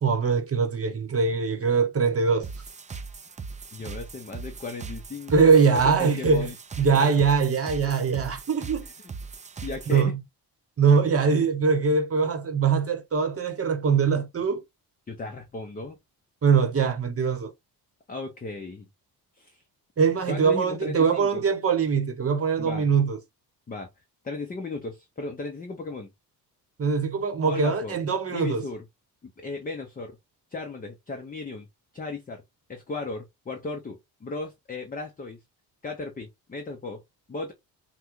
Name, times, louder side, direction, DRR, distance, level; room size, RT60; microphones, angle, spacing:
voice 1, 0.0-2.5 5.3-6.5 6.8-8.9 9.9-10.2 10.8-14.6 16.4-17.5 20.0-23.2 26.8-28.6, right 5 dB, 35° right, 1.0 m, -22 dB
sound 1, 2.4-10.0, right 4 dB, 20° right, 0.4 m, -39 dB
voice 2, 3.7-6.5 7.0-7.1 9.6-10.2 15.1-16.0 18.1-18.9 19.4-19.6 20.3-21.5 22.6-22.9 23.7-23.9 24.2-26.1 27.4-28.0 28.3-28.8 29.2-30.2 30.5-31.7 31.9-32.4 32.7-35.4 35.8-37.0 37.3-37.5, left 3 dB, 20° left, 0.7 m, -35 dB
5.8 x 2.2 x 3.0 m
cardioid pair, 125°, 41 cm